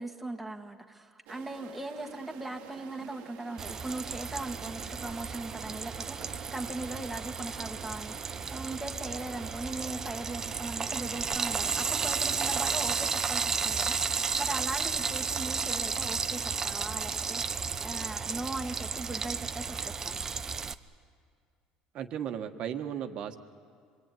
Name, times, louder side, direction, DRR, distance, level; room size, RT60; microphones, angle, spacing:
voice 1, 0.0-20.3, right 2 dB, 5° right, 1 dB, 1.6 m, -39 dB
sound 1, 1.3-13.1, right 10 dB, 75° right, 1.6 m, -50 dB
Frying (food), 3.6-20.7, right 5 dB, 25° right, 0.7 m, -33 dB
voice 2, 21.9-23.4, right 9 dB, 50° right, 6 dB, 1.5 m, -35 dB
26.0 x 22.5 x 9.3 m, 2.2 s
cardioid pair, 135°, 2 cm